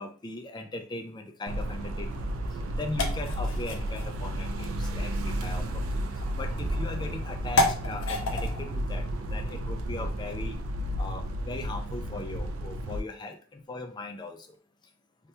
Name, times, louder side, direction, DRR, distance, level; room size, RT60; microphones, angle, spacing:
voice 1, 0.0-2.2 2.7-6.1 6.4-9.0 9.3-10.6 11.0-14.6, left 2 dB, 20° left, 5 dB, 0.3 m, -39 dB
sound 1, 1.5-13.0, equal, 70° right, 0.4 m, -32 dB
sound 2, 1.7-10.4, left 2 dB, 65° left, 0.5 m, -34 dB
3.3 x 2.2 x 2.7 m, 0.42 s
head